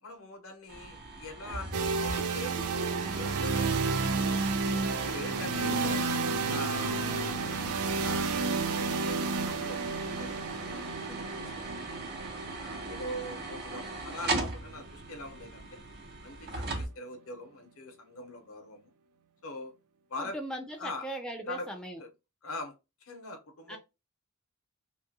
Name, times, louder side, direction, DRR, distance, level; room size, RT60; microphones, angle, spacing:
voice 1, 0.0-4.5 5.1-6.0 6.4-7.4 7.7-12.0 12.5-15.7 16.2-18.9 19.4-19.7 20.1-20.4 20.8-21.1 21.5-21.7 22.0-22.1 22.4-22.7 23.0-23.8, left 1 dB, 70° left, 0.8 m, -43 dB
sound 1, 0.7-16.9, right 2 dB, 50° right, 0.8 m, -39 dB
sound 2, 1.7-15.6, right 4 dB, 85° right, 0.4 m, -32 dB
voice 2, 20.2-22.0 23.7-23.8, right 1 dB, 5° left, 0.3 m, -39 dB
2.6 x 2.4 x 2.6 m
head